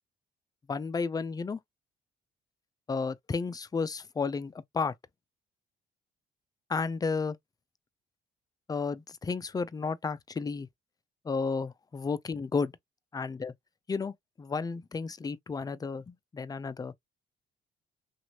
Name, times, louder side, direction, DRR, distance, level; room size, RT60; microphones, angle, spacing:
voice 1, 0.7-1.6 2.9-4.9 6.7-7.4 8.7-10.7 11.2-12.7 13.1-13.5 13.9-16.9, left 4 dB, 20° left, 0.4 m, -32 dB
2.9 x 2.5 x 2.8 m
cardioid pair, 90°, 20 cm